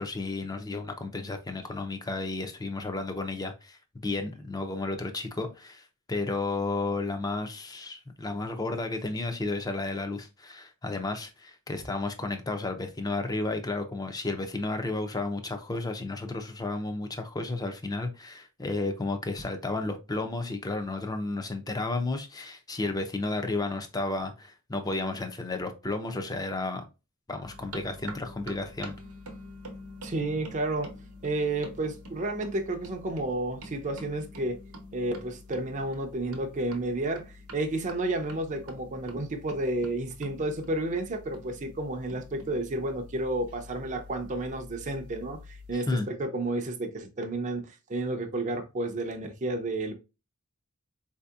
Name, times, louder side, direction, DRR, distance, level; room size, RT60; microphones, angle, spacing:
voice 1, 0.0-26.8 27.3-28.9 45.7-46.1, left 2 dB, 15° left, 0.5 m, -32 dB
sound 1, 27.4-45.8, equal, 80° right, 0.8 m, -47 dB
voice 2, 30.0-30.9 31.2-34.6 34.9-49.9, right 2 dB, 35° right, 0.5 m, -31 dB
4.2 x 2.7 x 2.3 m
head